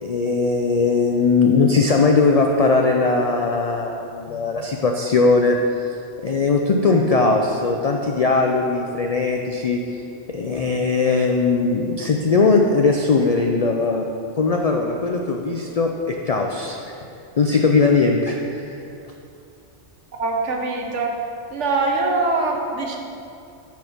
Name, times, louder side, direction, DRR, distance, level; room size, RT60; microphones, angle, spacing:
voice 1, 0.0-5.9 6.2-10.0 10.3-14.0 14.4-16.9 17.4-18.8, left 4 dB, 65° left, 2 dB, 0.3 m, -19 dB
voice 2, 20.2-21.2 21.5-23.0, right 3 dB, 80° right, 1 dB, 1.3 m, -23 dB
8.1 x 4.2 x 6.0 m, 2.6 s
omnidirectional pair, 1.2 m